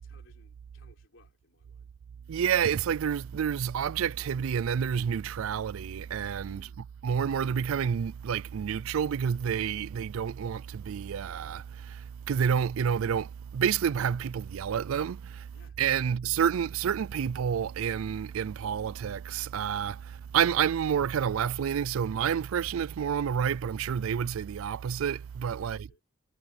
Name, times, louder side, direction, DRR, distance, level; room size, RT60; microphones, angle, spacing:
voice 1, 0.0-1.9 6.4-6.9 15.5-15.8 25.6-26.0, left 3 dB, 65° left, 3.8 m, -61 dB
voice 2, 2.3-6.7 7.0-15.5 15.8-25.9, right 8 dB, 85° right, 0.4 m, -29 dB
head